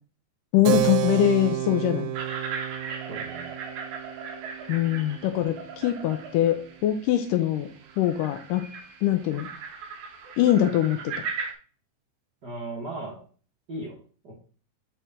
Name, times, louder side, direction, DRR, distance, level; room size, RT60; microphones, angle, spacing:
voice 1, 0.5-2.1 4.7-7.7 8.0-8.7 9.0-9.5 10.4-11.1, left 12 dB, 80° left, 7 dB, 2.0 m, -23 dB
Keyboard (musical), 0.7-6.8, right 12 dB, 90° right, 2.4 m, -31 dB
sound 1, 2.1-11.5, right 5 dB, 70° right, 2.0 m, -38 dB
voice 2, 3.1-3.5 12.4-13.2 13.7-14.0 14.2-14.3, right 2 dB, 45° right, -5 dB, 1.4 m, -36 dB
8.4 x 4.1 x 3.6 m, 0.40 s
omnidirectional pair, 4.1 m